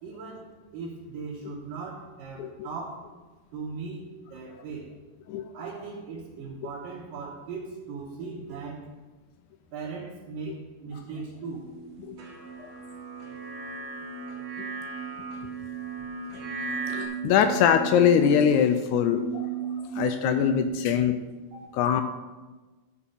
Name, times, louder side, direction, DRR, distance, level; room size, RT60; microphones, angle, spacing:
voice 1, 0.0-3.1 3.5-4.9 5.5-8.9 9.7-11.6 21.5-21.6, right 4 dB, 80° right, -6 dB, 3.0 m, -38 dB
sound 1, 11.5-20.7, right 6 dB, 60° left, 3.4 m, -37 dB
sound 2, 12.2-17.1, right 3 dB, 50° right, 1.6 m, -39 dB
voice 2, 16.9-19.5 19.8-21.2 21.7-22.0, left 8 dB, 80° left, 8 dB, 1.8 m, -23 dB
12.5 x 4.4 x 5.6 m, 1.3 s
omnidirectional pair, 3.8 m